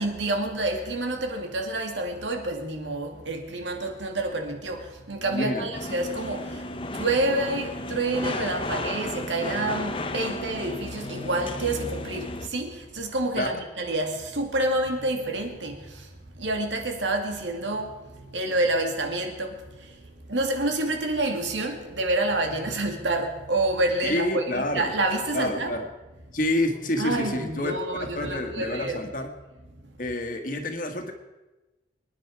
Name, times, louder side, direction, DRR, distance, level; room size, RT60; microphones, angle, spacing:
voice 1, 0.0-25.8 27.0-29.0, right 2 dB, 90° right, 3 dB, 2.3 m, -28 dB
voice 2, 5.2-5.7 13.4-13.5 24.0-24.9 25.3-25.9 26.3-29.3 30.0-31.1, left 1 dB, 45° left, 5 dB, 1.6 m, -28 dB
sound 1, 5.7-12.5, left 2 dB, 30° left, 0.8 m, -33 dB
25.0 x 10.0 x 4.7 m, 1.1 s
head